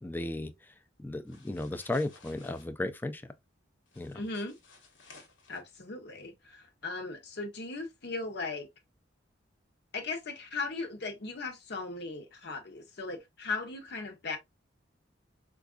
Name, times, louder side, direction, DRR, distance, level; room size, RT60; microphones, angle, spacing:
voice 1, 0.0-0.5 1.0-3.2 4.0-4.2, left 2 dB, 10° left, 0.3 m, -34 dB
sound 1, 1.3-2.7 3.9-5.6, left 4 dB, 85° left, 1.2 m, -56 dB
voice 2, 4.1-4.6 5.5-8.7 9.9-14.4, left 3 dB, 60° left, 0.8 m, -38 dB
4.5 x 2.4 x 2.3 m
head